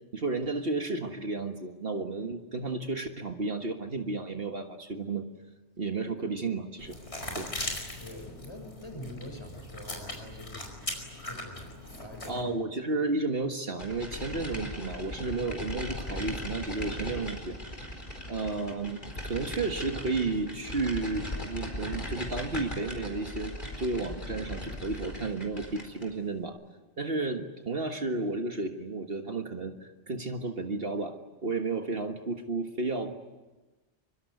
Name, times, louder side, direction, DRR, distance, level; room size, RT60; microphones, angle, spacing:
voice 1, 0.1-5.3 5.8-7.0 7.4-7.5 12.3-17.6 18.3-26.6 27.0-31.2 31.4-33.1, right 3 dB, 55° right, 5 dB, 1.8 m, -32 dB
sound 1, 6.8-12.4, left 1 dB, 70° left, 5.5 m, -39 dB
voice 2, 8.0-10.9 11.2-12.6, left 1 dB, 25° left, 3 dB, 6.4 m, -44 dB
sound 2, 13.8-26.1, left 1 dB, 45° left, 4.7 m, -38 dB
24.5 x 24.0 x 9.5 m, 1.2 s
omnidirectional pair, 1.2 m